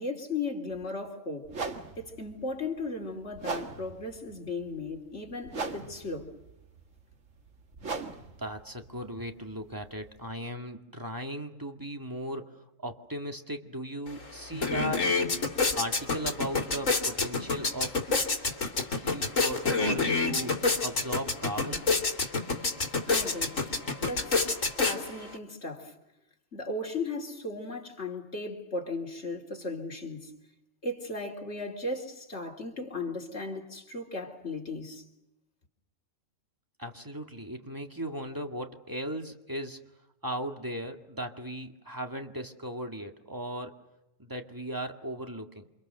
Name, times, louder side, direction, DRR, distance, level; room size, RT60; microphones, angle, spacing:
voice 1, 0.0-1.5 2.0-6.3 23.1-23.6 24.0-24.5 24.8-25.9 26.5-30.3 30.8-35.1, left 2 dB, 60° left, 3.8 m, -36 dB
sound 1, 0.7-0.8 1.5-10.3, right 4 dB, 75° right, 2.2 m, -40 dB
voice 2, 8.4-15.1 15.8-18.0 19.0-21.8 36.8-39.9 40.2-43.8 44.2-45.7, equal, 15° right, 2.1 m, -37 dB
sound 2, 14.1-14.2 14.5-25.4, left 3 dB, 75° left, 3.1 m, -28 dB
28.5 x 27.0 x 6.6 m
omnidirectional pair, 1.3 m